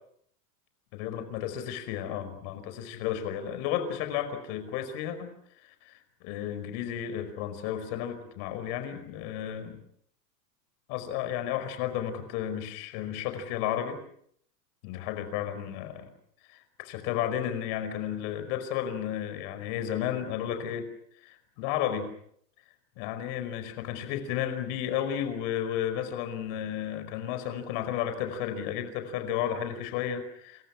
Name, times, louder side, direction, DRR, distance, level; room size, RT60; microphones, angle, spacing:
voice 1, 0.9-5.3 5.6-9.8 10.9-14.0 14.8-16.1 16.5-20.9 21.2-22.1 23.0-30.6, left 10 dB, 40° left, 10 dB, 5.1 m, -33 dB
28.5 x 28.5 x 6.0 m, 0.68 s
supercardioid pair, 165°, 50 cm